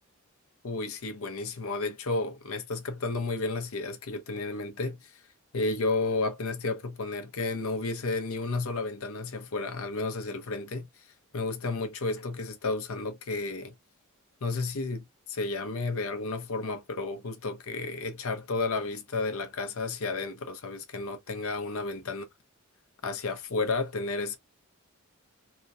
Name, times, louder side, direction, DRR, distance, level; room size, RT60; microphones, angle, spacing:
voice 1, 0.6-5.2 5.5-10.9 11.3-13.7 14.4-22.2 23.0-24.4, left 3 dB, 65° left, 0.7 m, -32 dB
2.9 x 2.6 x 2.3 m
head